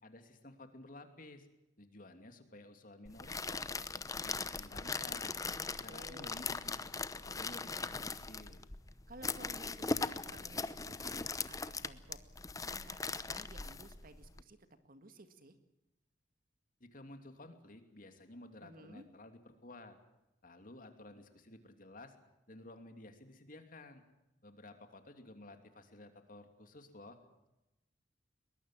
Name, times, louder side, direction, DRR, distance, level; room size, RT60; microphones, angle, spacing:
voice 1, 0.0-1.5 1.8-5.3 5.8-8.6 16.8-20.0 20.4-22.1 22.5-24.0 24.4-27.2, left 2 dB, 50° left, 7 dB, 2.8 m, -54 dB
sound 1, 3.1-14.4, left 4 dB, 20° left, 0.8 m, -40 dB
voice 2, 5.5-6.4 9.1-11.2 11.5-15.6 18.6-19.1, right 2 dB, 50° right, 9 dB, 1.9 m, -55 dB
22.5 x 21.0 x 7.6 m, 0.94 s
head